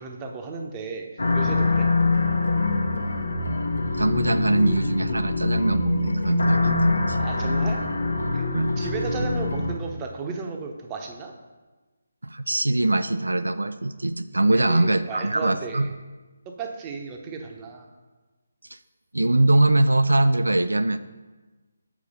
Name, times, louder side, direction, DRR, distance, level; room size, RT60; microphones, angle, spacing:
voice 1, 0.0-1.9 7.2-7.8 8.3-8.4 8.8-11.3 14.5-15.9 16.5-17.9, right 4 dB, 20° right, 2 dB, 0.8 m, -34 dB
sound 1, 1.2-9.8, left 3 dB, 80° left, 1.0 m, -24 dB
voice 2, 4.0-7.2 8.5-8.7 12.2-15.9 18.7-18.8 19.1-21.0, right 2 dB, 90° right, 11 dB, 0.3 m, -22 dB
6.5 x 5.1 x 5.4 m, 1.2 s
figure-of-eight pair, 155°, 0 cm